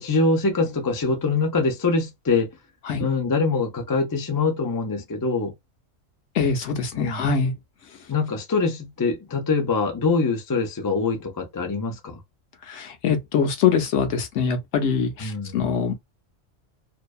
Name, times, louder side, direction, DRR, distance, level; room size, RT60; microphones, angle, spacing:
voice 1, 0.0-2.5 3.0-5.5 6.9-7.3 8.1-12.2 15.2-15.6, left 3 dB, 35° left, 0.3 m, -24 dB
voice 2, 6.3-7.5 12.7-15.9, left 6 dB, 70° left, 0.9 m, -23 dB
2.5 x 2.2 x 2.4 m
omnidirectional pair, 1.3 m